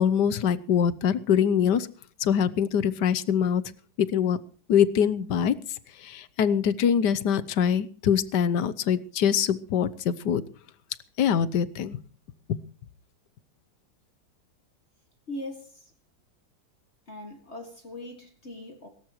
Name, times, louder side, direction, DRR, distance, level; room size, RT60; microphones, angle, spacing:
voice 1, 0.0-1.9 2.2-3.6 4.0-4.4 4.7-5.5 6.0-10.4 11.2-12.0, left 8 dB, 65° left, 17 dB, 1.4 m, -23 dB
voice 2, 15.3-15.9 17.1-18.9, left 1 dB, 35° left, 4 dB, 2.2 m, -40 dB
18.0 x 17.5 x 3.1 m, 0.39 s
omnidirectional pair, 2.1 m